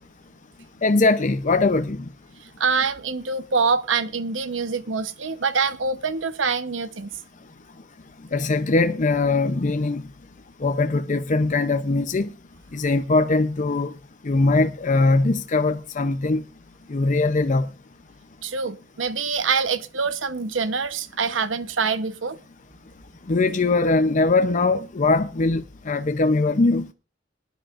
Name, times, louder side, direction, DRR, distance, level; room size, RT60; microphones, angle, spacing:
voice 1, 0.8-2.1 8.3-10.0 10.6-12.3 12.7-13.9 14.2-16.4 16.9-17.7 23.3-26.9, left 3 dB, 40° left, 0.6 m, -21 dB
voice 2, 2.6-7.1 18.4-22.4, right 5 dB, 90° right, 1.0 m, -25 dB
23.5 x 10.5 x 2.5 m
head